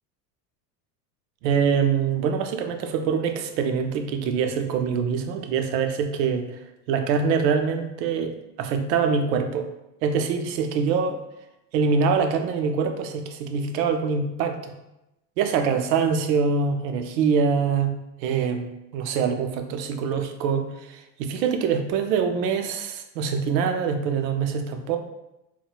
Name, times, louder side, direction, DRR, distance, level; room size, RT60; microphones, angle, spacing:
voice 1, 1.4-9.7 10.0-11.2 11.7-14.7 15.4-17.9 18.2-25.0, right 6 dB, 80° right, 6 dB, 0.6 m, -24 dB
3.9 x 2.1 x 2.2 m, 0.91 s
hypercardioid pair, 95°, 49 cm